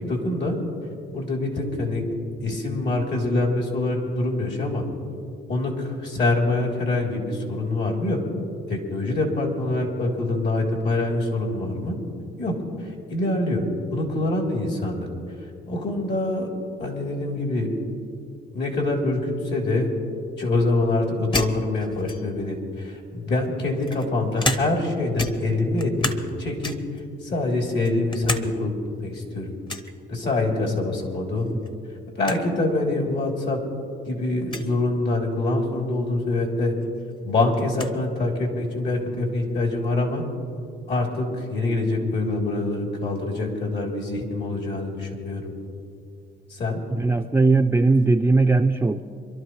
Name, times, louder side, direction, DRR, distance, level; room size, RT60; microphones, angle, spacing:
voice 1, 0.1-0.6 1.1-2.0 2.4-4.8 5.5-8.2 8.7-11.9 12.4-12.5 12.8-13.7 13.9-15.1 15.7-16.5 16.8-17.7 18.5-19.9 20.4-26.8 27.2-28.7 29.0-29.5 30.1-31.5 32.2-33.6 34.0-36.7 37.2-40.2 40.9-45.5 46.5-46.8, left 2 dB, 60° left, 0 dB, 3.2 m, -25 dB
sound 1, 21.3-22.5 23.3-24.9 25.2-26.3 26.6-27.0 27.5-28.5 28.8-28.9 29.7-29.9 31.4-31.7 32.0-32.4 33.2-33.3 34.4-34.7 36.4-36.5 36.8-38.0, left 1 dB, 25° left, 1.0 m, -30 dB
voice 2, 46.9-49.0, right 3 dB, 10° right, 5 dB, 0.5 m, -19 dB
26.5 x 12.0 x 3.1 m, 2.5 s
cardioid pair, 90°, 20 cm